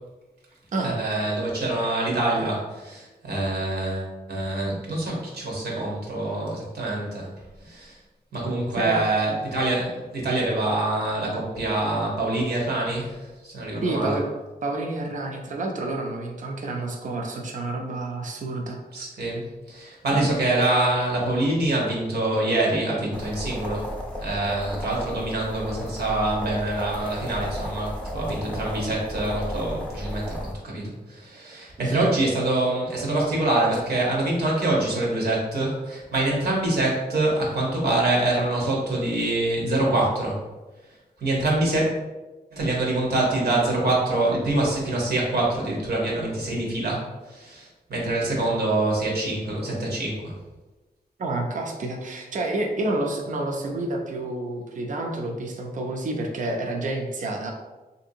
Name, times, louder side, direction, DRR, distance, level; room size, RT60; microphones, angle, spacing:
voice 1, 0.8-7.3 7.6-8.0 8.3-14.1 18.9-23.9 24.2-40.4 41.2-41.9 42.5-50.3, right 2 dB, 80° right, -3 dB, 1.0 m, -25 dB
voice 2, 13.8-14.2 14.6-19.0 20.1-20.3 31.8-32.1 51.2-57.5, right 2 dB, 55° right, 2 dB, 0.5 m, -29 dB
sound 1, 23.1-30.5, equal, 5° left, 0.5 m, -34 dB
3.2 x 2.7 x 2.6 m, 1.1 s
wide cardioid pair, 110°, 16 cm